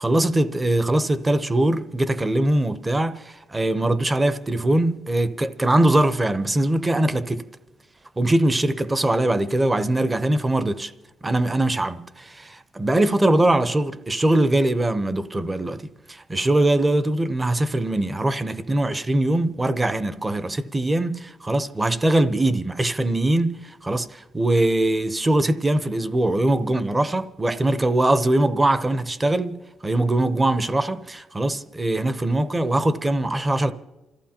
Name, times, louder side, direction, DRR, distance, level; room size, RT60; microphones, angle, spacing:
voice 1, 0.0-7.5 8.2-10.9 11.2-15.8 16.1-33.7, right 1 dB, 20° right, 0.8 m, -22 dB
28.0 x 14.5 x 2.9 m
cardioid pair, 90°, 0 cm